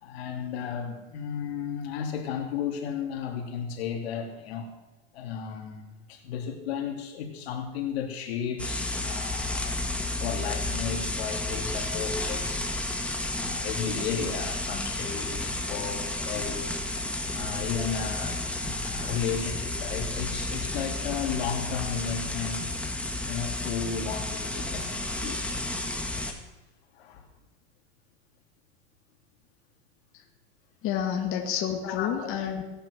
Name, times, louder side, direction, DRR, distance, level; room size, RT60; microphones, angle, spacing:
voice 1, 0.0-4.7 5.1-12.6 13.3-16.8 17.3-22.7 23.3-25.6 26.9-27.2 31.8-32.1, left 7 dB, 85° left, 2 dB, 3.1 m, -34 dB
sound 1, 8.6-26.3, left 2 dB, 5° left, 1.9 m, -32 dB
voice 2, 30.8-32.6, left 9 dB, 45° left, 2 dB, 2.3 m, -29 dB
18.0 x 10.5 x 6.5 m, 1.1 s
supercardioid pair, 130°, 30 cm